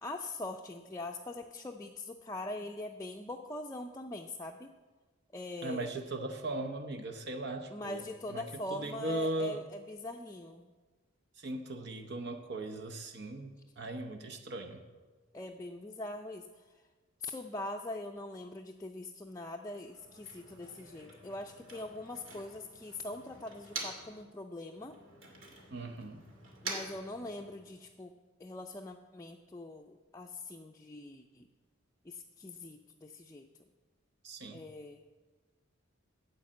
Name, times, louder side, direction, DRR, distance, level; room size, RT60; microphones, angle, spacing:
voice 1, 0.0-4.7 5.3-5.9 7.7-10.7 15.3-16.6 17.2-25.0 26.6-28.1 28.4-31.5 32.0-33.5 34.5-35.0, left 2 dB, 15° left, 2 dB, 0.5 m, -42 dB
voice 2, 5.6-8.0 8.3-8.4 8.7-9.6 11.4-14.8 25.7-26.2 34.2-34.6, right 2 dB, 60° right, 4 dB, 0.9 m, -38 dB
Motor vehicle (road), 19.8-24.2 24.5-27.8, right 3 dB, 75° right, 2.5 m, -47 dB
9.4 x 8.6 x 7.5 m, 1.3 s
head